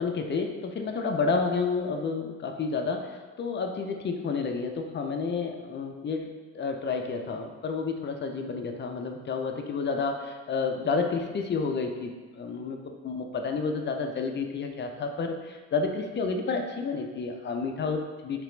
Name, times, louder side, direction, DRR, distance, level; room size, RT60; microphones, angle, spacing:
voice 1, 0.0-6.3 6.5-18.4, left 4 dB, 40° left, 4 dB, 0.4 m, -30 dB
3.3 x 3.0 x 3.1 m, 1.3 s
cardioid pair, 90°, 30 cm